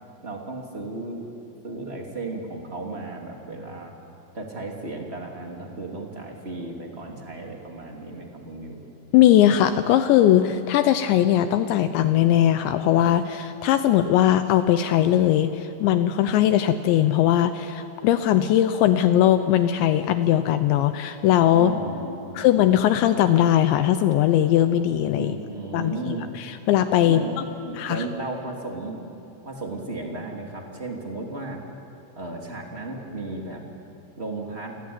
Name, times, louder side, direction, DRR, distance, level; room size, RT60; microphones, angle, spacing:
voice 1, 0.2-1.3 1.6-3.9 4.3-8.8 21.5-22.5 25.2-26.3 27.1-27.3 27.6-29.0 29.4-31.6 32.1-33.6 34.2-34.7, right 2 dB, 25° right, 0 dB, 1.3 m, -34 dB
voice 2, 9.1-21.7 22.4-25.3 25.7-27.2 27.8-28.0, left 11 dB, 80° left, 10 dB, 2.7 m, -20 dB
29.0 x 23.5 x 8.8 m, 2.7 s
omnidirectional pair, 5.9 m